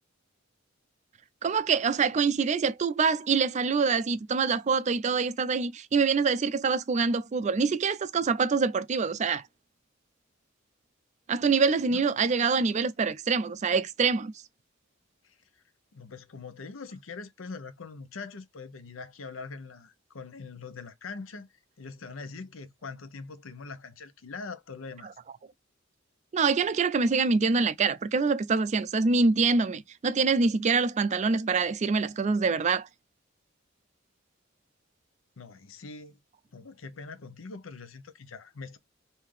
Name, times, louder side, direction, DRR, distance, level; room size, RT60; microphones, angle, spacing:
voice 1, 1.4-9.4 11.3-14.3 26.3-32.9, right 4 dB, 35° right, 0.4 m, -25 dB
voice 2, 15.9-21.5 21.8-25.1 35.4-36.2 36.5-38.8, left 4 dB, 85° left, 0.7 m, -42 dB
3.7 x 2.7 x 3.1 m
head